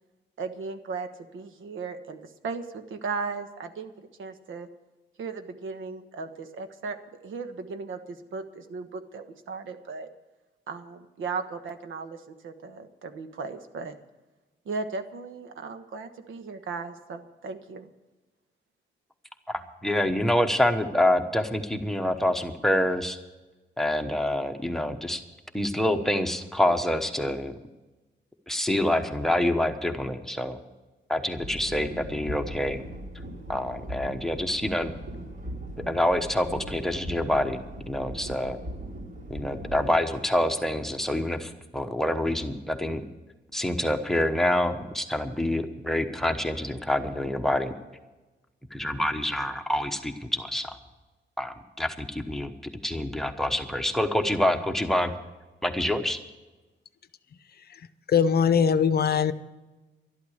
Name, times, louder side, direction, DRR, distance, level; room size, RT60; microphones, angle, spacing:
voice 1, 0.4-4.7 5.2-7.0 7.2-10.1 10.7-14.0 14.6-17.9, right 4 dB, 85° right, 8 dB, 1.3 m, -36 dB
voice 2, 19.8-23.2 23.8-25.2 25.5-27.5 28.5-30.6 31.1-32.8 33.5-34.9 35.9-38.6 39.3-43.0 43.5-47.7 48.7-50.8 51.4-52.5 52.8-55.1 55.6-56.2, left 1 dB, ahead, 5 dB, 1.0 m, -26 dB
sound 1, 31.4-40.0, right 1 dB, 50° right, 3.9 m, -39 dB
voice 3, 58.1-59.3, left 7 dB, 55° left, 14 dB, 0.6 m, -21 dB
12.0 x 12.0 x 6.5 m, 1.2 s
wide cardioid pair, 155°, 20 cm